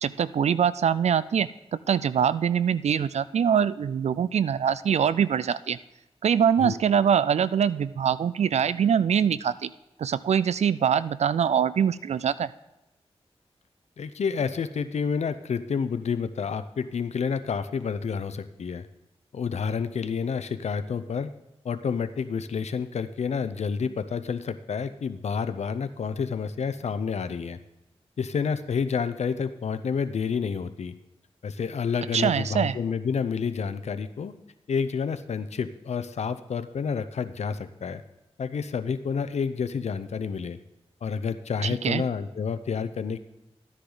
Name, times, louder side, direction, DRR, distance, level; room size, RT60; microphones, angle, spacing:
voice 1, 0.0-5.8 6.2-9.7 10.0-12.5 32.1-32.8 41.6-42.0, right 8 dB, 85° right, 16 dB, 0.4 m, -23 dB
voice 2, 14.0-18.9 19.3-21.3 21.6-27.6 28.2-30.9 31.4-34.3 34.7-38.0 38.4-40.6 41.0-43.2, left 6 dB, 85° left, 12 dB, 0.6 m, -29 dB
13.0 x 10.0 x 3.9 m, 0.94 s
wide cardioid pair, 65°, 11 cm